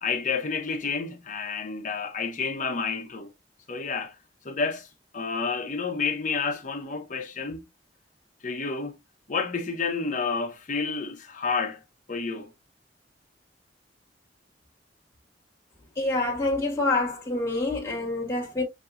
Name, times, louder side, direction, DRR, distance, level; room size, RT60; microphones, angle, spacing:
voice 1, 0.0-3.3 3.7-4.1 4.4-4.9 5.1-7.6 8.4-9.0 9.3-11.8 12.1-12.5, left 4 dB, 45° left, 1.0 m, -30 dB
voice 2, 16.0-18.6, left 2 dB, 15° left, 2.0 m, -26 dB
6.3 x 2.8 x 2.5 m
head